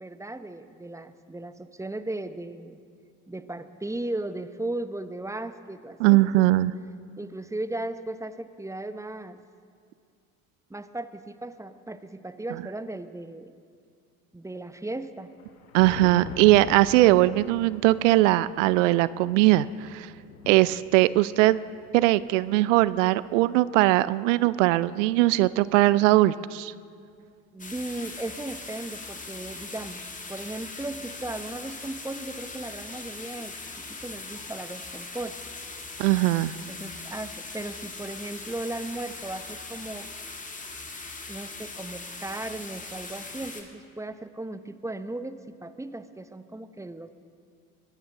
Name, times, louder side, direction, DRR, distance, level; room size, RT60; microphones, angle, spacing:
voice 1, 0.0-2.8 3.3-6.4 7.2-9.4 10.7-13.5 14.3-15.3 27.5-35.4 36.7-40.1 41.3-47.1, right 2 dB, 5° right, 12 dB, 0.8 m, -36 dB
voice 2, 6.0-6.7 15.7-20.1 20.5-21.6 21.9-26.7 36.0-36.5, right 17 dB, 65° right, 19 dB, 0.5 m, -20 dB
Thunder, 15.2-23.8 24.5-26.2 27.3-27.4 28.0-28.1 29.9-30.0 31.4-31.5 33.1-33.2, left 4 dB, 80° left, 1.5 m, -45 dB
sound 1, 27.6-43.6, left 3 dB, 20° left, 2.1 m, -40 dB
22.5 x 16.5 x 3.7 m, 2.3 s
figure-of-eight pair, 55°, 41 cm